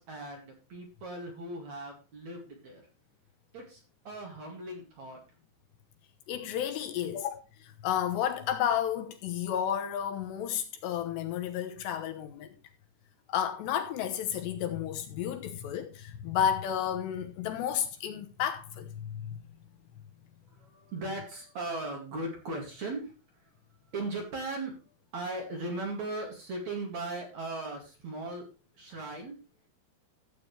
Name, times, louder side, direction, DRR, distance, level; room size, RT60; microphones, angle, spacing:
voice 1, 0.0-2.8 3.5-5.2 20.6-23.1 23.9-24.8 25.1-28.5 28.7-29.4, right 2 dB, 45° right, 2.9 m, -38 dB
voice 2, 6.3-7.4 7.6-12.6 13.3-19.4, left 9 dB, 75° left, 3.1 m, -32 dB
14.0 x 8.4 x 3.2 m
omnidirectional pair, 5.2 m